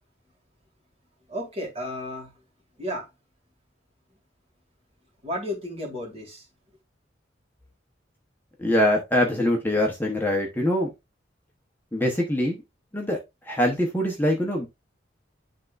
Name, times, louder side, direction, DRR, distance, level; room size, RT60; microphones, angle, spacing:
voice 1, 1.3-2.3 2.8-3.1 5.2-6.5, left 1 dB, 35° right, 2.2 m, -33 dB
voice 2, 8.6-10.9 11.9-12.6 12.9-13.2 13.4-14.7, left 1 dB, 10° left, 1.0 m, -23 dB
10.5 x 3.6 x 2.5 m
head